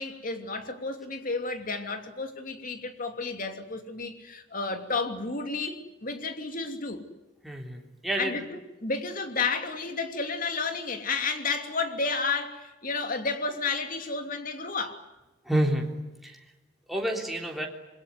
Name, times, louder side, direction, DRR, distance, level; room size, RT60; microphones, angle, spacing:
voice 1, 0.0-7.0 8.2-8.5 8.8-15.0, left 4 dB, 45° left, 2.9 m, -31 dB
voice 2, 7.4-8.4 15.4-15.9 16.2-16.4 16.9-17.7, right 1 dB, ahead, 3.5 m, -29 dB
26.5 x 22.0 x 9.7 m
head